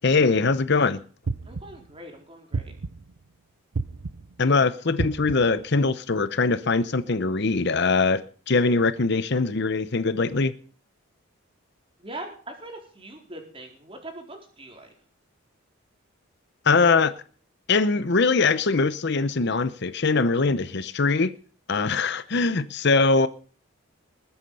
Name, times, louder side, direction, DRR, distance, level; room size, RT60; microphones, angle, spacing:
voice 1, 0.0-1.0 4.4-10.5 16.6-17.2 17.7-21.3 21.7-23.3, left 4 dB, 50° left, 0.8 m, -22 dB
sound 1, 1.3-1.9 2.5-3.2 3.8-4.4 5.0-5.6, right 3 dB, 85° right, 0.7 m, -31 dB
voice 2, 1.5-2.7 12.0-14.9, right 1 dB, 25° right, 4.2 m, -41 dB
21.0 x 8.6 x 5.6 m
head